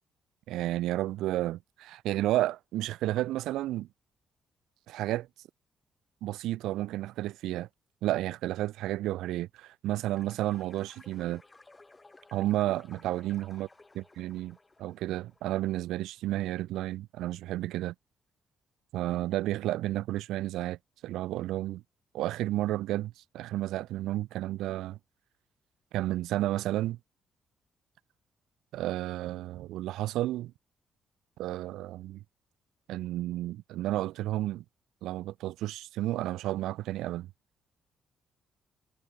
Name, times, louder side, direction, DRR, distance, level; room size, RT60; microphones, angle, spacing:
voice 1, 0.5-3.9 4.9-5.3 6.2-7.7 8.0-11.4 12.3-13.7 14.0-17.9 18.9-21.8 22.1-25.0 25.9-27.0 28.7-30.5 31.4-32.2 32.9-34.6 35.0-37.3, right 15 dB, 90° right, 0.5 m, -32 dB
sound 1, 10.0-15.8, left 2 dB, 20° left, 1.8 m, -57 dB
cardioid pair, 90°, 0 cm